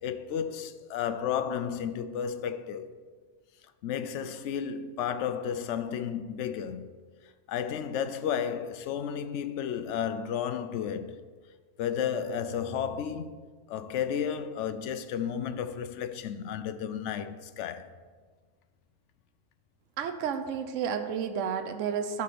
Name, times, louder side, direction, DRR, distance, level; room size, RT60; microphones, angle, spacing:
voice 1, 0.0-2.9 3.8-6.9 7.5-11.2 11.8-13.4 13.7-17.9, left 8 dB, 70° left, 0.9 m, -32 dB
voice 2, 20.0-22.2, right 7 dB, 80° right, 1.0 m, -31 dB
11.5 x 4.2 x 6.7 m
omnidirectional pair, 1.3 m